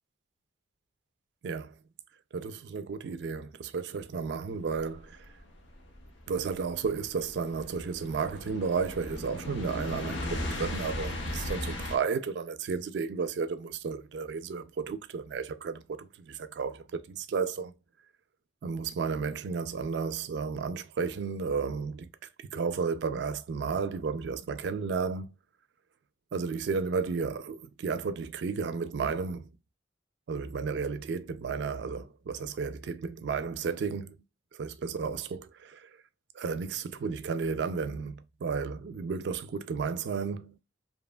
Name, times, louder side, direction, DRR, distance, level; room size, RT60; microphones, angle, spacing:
voice 1, 1.4-1.7 2.3-5.3 6.3-17.7 18.6-22.1 22.4-25.3 26.3-29.5 30.3-34.2 34.5-35.9 36.3-40.6, right 5 dB, 70° right, 0.3 m, -33 dB
sound 1, 4.9-12.0, left 1 dB, 90° left, 0.7 m, -37 dB
2.8 x 2.2 x 2.3 m
head